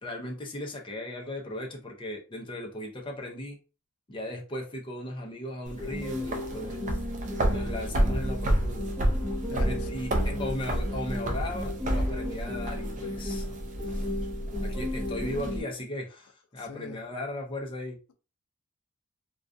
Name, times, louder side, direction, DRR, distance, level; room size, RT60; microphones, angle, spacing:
voice 1, 0.0-3.6 4.1-7.0 7.4-8.9 9.6-13.5 13.8-14.1 14.6-18.0, left 1 dB, 25° left, 0.5 m, -37 dB
sound 1, 5.7-15.6, right 1 dB, 35° right, 0.4 m, -30 dB
sound 2, 5.8-15.8, left 1 dB, 15° right, 0.9 m, -36 dB
voice 2, 9.5-10.6 16.6-17.1, left 5 dB, 90° left, 0.4 m, -43 dB
2.3 x 2.3 x 2.5 m
head